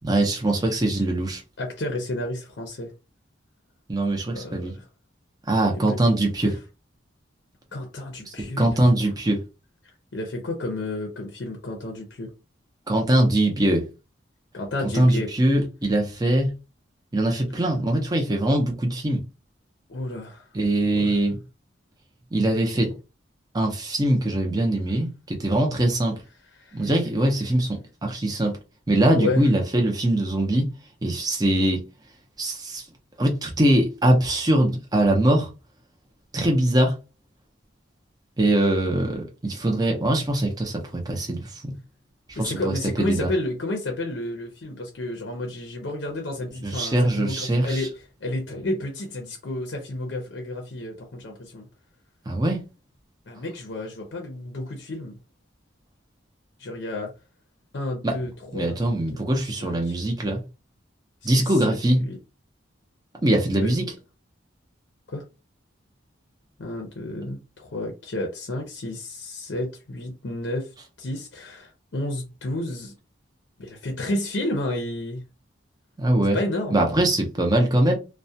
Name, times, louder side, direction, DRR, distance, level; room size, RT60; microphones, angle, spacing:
voice 1, 0.0-1.4 3.9-4.7 5.5-6.6 8.3-9.4 12.9-13.8 14.9-16.5 17.1-19.2 20.5-21.4 22.3-22.9 23.5-26.2 26.7-28.6 28.9-30.7 31.0-31.8 32.4-32.8 33.2-35.5 36.3-36.9 38.4-41.7 42.3-43.3 46.6-47.9 52.3-52.6 58.0-58.1 58.5-60.4 61.2-62.0 63.2-63.9 76.0-76.4 76.7-78.0, right 1 dB, 20° right, 0.5 m, -22 dB
voice 2, 1.6-2.9 4.3-4.9 5.7-6.0 7.7-8.8 10.1-12.3 14.5-15.3 19.9-20.5 20.9-21.2 26.5-26.9 29.1-29.5 42.4-47.9 48.2-51.7 53.3-55.2 56.6-57.1 57.7-58.8 59.1-59.2 59.6-60.0 61.2-62.2 63.6-63.7 65.1-65.2 66.6-70.7 71.0-72.9 73.6-75.2 76.3-76.9, left 1 dB, 60° left, 0.5 m, -31 dB
2.3 x 2.1 x 2.6 m
head